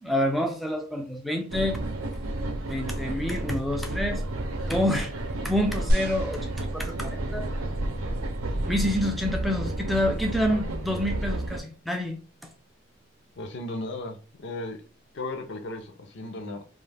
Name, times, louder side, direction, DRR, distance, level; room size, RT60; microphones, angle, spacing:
voice 1, 0.0-1.8 2.7-4.2 4.7-5.1 5.4-7.4 8.7-12.2, left 1 dB, ahead, 0.3 m, -28 dB
sound 1, 1.5-11.6, right 1 dB, 90° right, 0.6 m, -31 dB
sound 2, 5.9-7.4 8.2-8.3, equal, 45° right, 0.6 m, -29 dB
voice 2, 13.4-14.8 15.1-16.6, left 2 dB, 55° left, 0.5 m, -35 dB
2.3 x 2.3 x 3.3 m
head